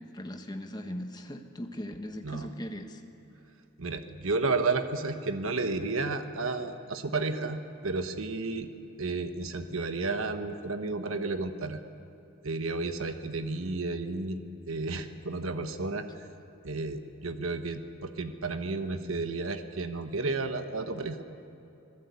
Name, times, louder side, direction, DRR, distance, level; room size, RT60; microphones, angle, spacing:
voice 1, 0.0-3.0, equal, 20° left, 5 dB, 1.3 m, -39 dB
voice 2, 3.8-8.7 9.0-11.8 12.4-14.4 14.7-16.3 16.6-21.2, right 3 dB, 70° right, 8 dB, 1.2 m, -32 dB
25.5 x 17.0 x 8.4 m, 2.9 s
head